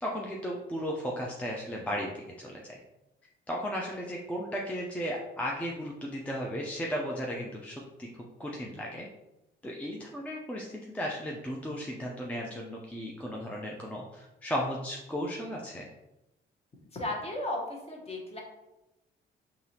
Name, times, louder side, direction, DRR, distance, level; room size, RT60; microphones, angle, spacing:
voice 1, 0.0-2.8 3.5-9.1 9.6-15.8, equal, 5° left, -2 dB, 0.5 m, -35 dB
voice 2, 16.9-18.4, left 1 dB, 30° left, 0 dB, 1.0 m, -35 dB
3.9 x 2.9 x 2.8 m, 0.95 s
cardioid pair, 90°, 20 cm